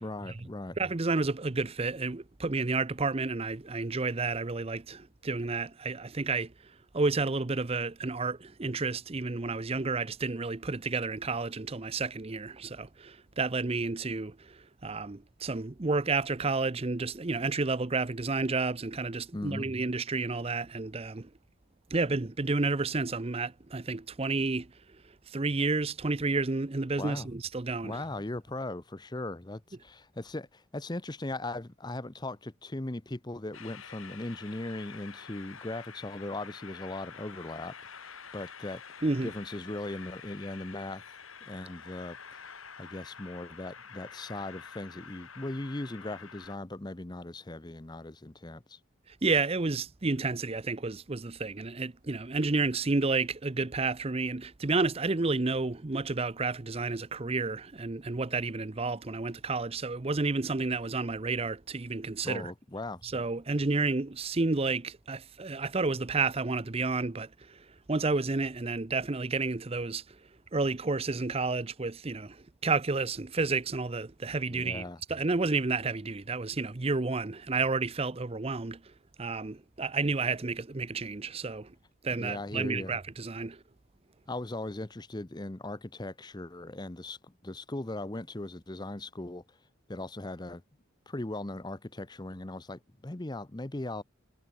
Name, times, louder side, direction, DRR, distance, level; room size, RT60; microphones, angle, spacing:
voice 1, 0.0-0.8 19.3-19.7 27.0-27.3 27.8-38.8 39.2-42.5 42.8-48.8 62.2-63.0 74.5-75.0 82.2-82.9 84.3-89.4 89.9-90.6 91.1-94.0, left 2 dB, 20° left, 0.8 m, -39 dB
voice 2, 0.8-21.3 21.9-24.7 25.3-28.0 39.0-39.3 49.2-62.5 63.0-70.2 70.5-78.9 79.2-81.7 82.0-83.6, right 3 dB, 30° right, 0.7 m, -31 dB
Train, 33.5-46.6, left 6 dB, 75° left, 5.5 m, -48 dB
head